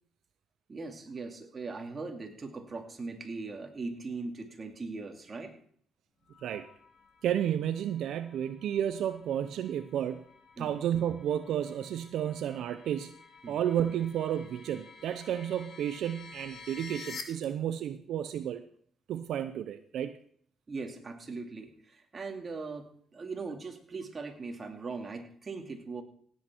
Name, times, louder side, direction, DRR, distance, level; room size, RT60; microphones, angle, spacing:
voice 1, 0.7-5.6 10.6-10.7 13.4-13.6 20.7-26.0, right 3 dB, 35° right, 3 dB, 2.5 m, -40 dB
sound 1, 6.3-17.2, left 5 dB, 60° left, 2.2 m, -51 dB
voice 2, 7.2-10.2 10.6-13.1 13.5-18.6 19.1-20.1, right 10 dB, 75° right, 9 dB, 0.6 m, -32 dB
17.0 x 8.5 x 4.5 m, 0.63 s
cardioid pair, 90°, 0 cm